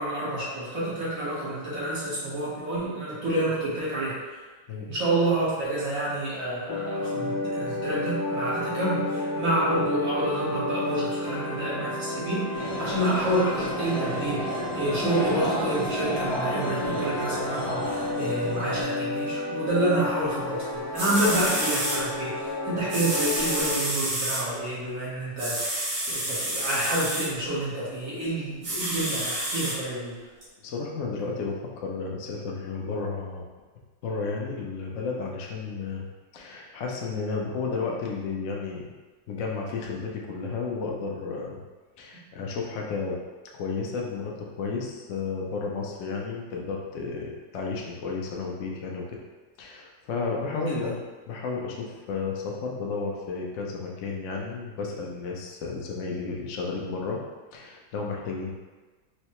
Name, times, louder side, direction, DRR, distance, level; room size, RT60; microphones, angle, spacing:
voice 1, 0.0-4.1 4.9-12.4 12.8-30.2 50.4-50.8, right 1 dB, 50° right, -8 dB, 1.4 m, -29 dB
sound 1, 6.7-23.8, left 1 dB, 90° left, 1.3 m, -31 dB
sound 2, 12.5-18.8, equal, 50° left, 1.0 m, -32 dB
sound 3, 20.7-20.8 21.0-22.0 22.9-24.4 25.4-27.3 28.6-29.8 30.4-30.5, right 1 dB, 75° right, 1.8 m, -29 dB
voice 2, 30.6-33.4 34.0-36.1 36.3-38.9 39.3-41.6 42.0-43.2 43.5-49.2 49.6-51.0 51.3-57.2 57.5-58.5, left 4 dB, 75° left, -1 dB, 0.7 m, -32 dB
4.5 x 2.1 x 2.9 m, 1.3 s
omnidirectional pair, 2.0 m